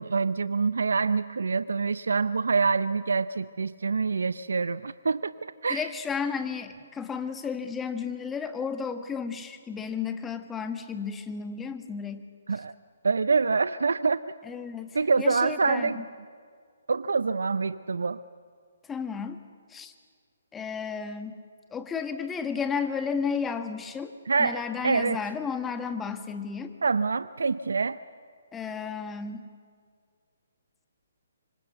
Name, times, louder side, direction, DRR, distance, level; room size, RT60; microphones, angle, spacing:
voice 1, 0.0-5.3 5.6-5.8 12.5-12.7 13.0-14.2 14.9-16.0 16.9-18.2 24.3-25.2 26.8-28.0, right 4 dB, 80° right, 15 dB, 0.6 m, -26 dB
voice 2, 5.7-12.3 12.5-12.6 14.4-16.1 18.8-19.4 19.7-19.9 20.5-21.4 21.7-26.8 28.5-29.5, left 6 dB, 10° left, 8 dB, 1.6 m, -33 dB
25.5 x 25.0 x 8.1 m, 2.1 s
hypercardioid pair, 145°, 0 cm